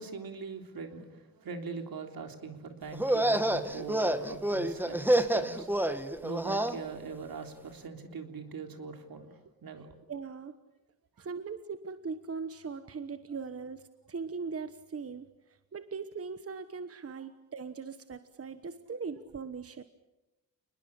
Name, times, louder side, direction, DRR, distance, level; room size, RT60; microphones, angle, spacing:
voice 1, 0.0-10.0 11.2-11.3, right 4 dB, 75° right, 5 dB, 3.6 m, -42 dB
sound 1, 2.9-6.8, right 1 dB, 5° right, 1.5 m, -28 dB
voice 2, 10.1-10.5 11.2-15.3 15.7-19.8, right 5 dB, 40° right, 10 dB, 1.2 m, -40 dB
28.5 x 21.0 x 8.7 m, 1.0 s
wide cardioid pair, 130°, 36 cm